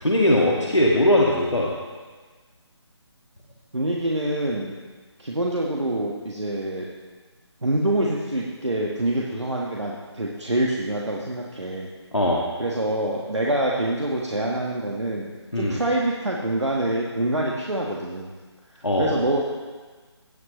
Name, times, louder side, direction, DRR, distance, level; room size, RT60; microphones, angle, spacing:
voice 1, 0.0-1.7 12.1-12.4 15.5-15.8 18.8-19.1, left 1 dB, 85° left, -4 dB, 1.7 m, -20 dB
voice 2, 3.7-4.7 5.2-6.8 7.6-11.9 12.6-15.3 15.5-18.3 19.0-19.4, right 1 dB, 85° right, -3 dB, 1.5 m, -26 dB
17.5 x 7.7 x 3.1 m, 1.4 s
figure-of-eight pair, 150°, 15 cm